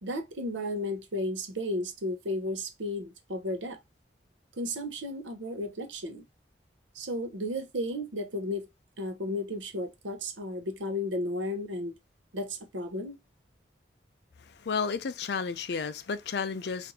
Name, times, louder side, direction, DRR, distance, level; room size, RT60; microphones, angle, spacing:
voice 1, 0.0-3.8 4.6-6.2 6.9-8.7 9.0-11.9 12.3-13.2, left 1 dB, 90° right, 0.8 m, -33 dB
voice 2, 14.6-16.9, left 5 dB, 65° left, 0.4 m, -32 dB
4.2 x 2.6 x 2.7 m
head